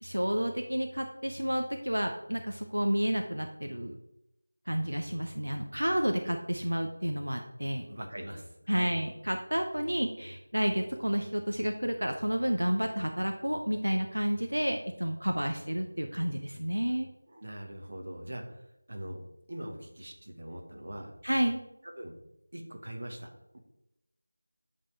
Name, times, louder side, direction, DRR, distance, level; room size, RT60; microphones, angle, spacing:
voice 1, 0.0-4.0 4.7-7.8 8.7-17.1 21.2-21.6, equal, 90° right, 4 dB, 0.6 m, -30 dB
voice 2, 7.9-8.9 17.3-21.1 22.0-23.6, right 1 dB, 50° right, 2 dB, 1.3 m, -42 dB
7.4 x 3.7 x 4.5 m, 0.88 s
figure-of-eight pair, 170°, 0 cm